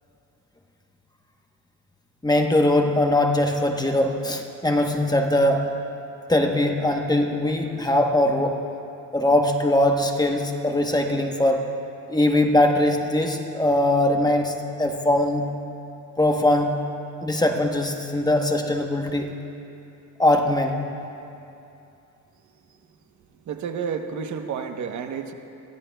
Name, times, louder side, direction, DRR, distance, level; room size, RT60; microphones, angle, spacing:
voice 1, 2.2-5.7 6.3-8.6 9.1-11.7 12.1-15.5 16.2-16.8 17.2-19.4 20.2-20.8, left 1 dB, 10° left, 3 dB, 1.0 m, -21 dB
voice 2, 23.5-25.3, right 6 dB, 65° right, 6 dB, 1.0 m, -30 dB
22.0 x 15.0 x 2.3 m, 2.7 s
cardioid pair, 110°, 31 cm